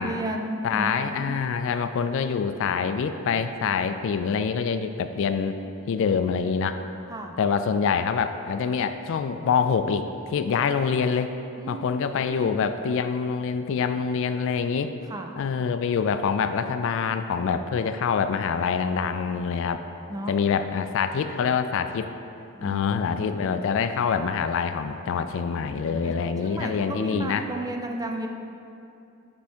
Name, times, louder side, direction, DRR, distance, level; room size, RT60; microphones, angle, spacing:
voice 1, 0.0-1.4 7.1-7.3 11.6-12.1 12.3-12.7 15.1-15.3 20.1-20.4 22.5-23.6 25.6-26.1 26.4-28.3, right 1 dB, 15° right, 3 dB, 0.4 m, -34 dB
voice 2, 0.6-5.6 5.9-6.8 7.4-11.3 11.7-14.9 15.4-19.8 20.3-22.1 22.6-27.5, left 6 dB, 60° left, 9 dB, 0.3 m, -25 dB
9.5 x 3.5 x 4.3 m, 2.7 s
head